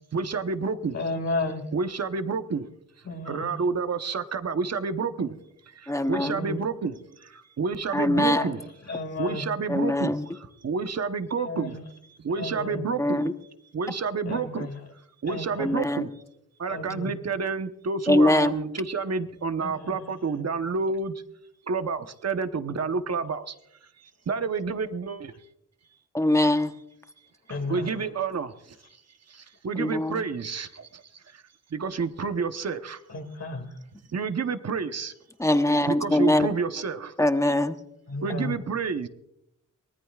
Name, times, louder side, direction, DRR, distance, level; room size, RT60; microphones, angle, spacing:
voice 1, 0.1-1.0 1.7-2.7 3.3-5.4 5.7-8.7 9.2-11.8 12.2-13.3 13.7-14.7 15.2-16.1 16.6-21.1 21.7-23.5 24.3-25.3 27.7-28.8 29.3-31.0 31.3-31.4 31.7-33.0 34.1-35.1 35.6-37.1 38.2-39.1, right 4 dB, 55° right, 9 dB, 1.0 m, -29 dB
voice 2, 0.9-1.6 3.1-3.5 6.1-6.5 8.1-8.5 8.8-9.5 11.4-11.8 12.3-12.8 14.2-14.8 15.3-15.8 16.7-17.1 19.6-20.0 27.5-28.0 33.1-33.7 38.1-38.6, left 3 dB, 55° left, 4 dB, 2.2 m, -33 dB
voice 3, 5.9-6.6 7.9-8.4 9.7-10.3 13.0-13.3 15.6-16.1 18.1-18.5 26.1-26.7 29.8-30.2 35.4-36.5 37.2-37.8, left 1 dB, 10° left, 8 dB, 1.0 m, -22 dB
23.5 x 19.0 x 2.4 m, 0.80 s
wide cardioid pair, 95°, 32 cm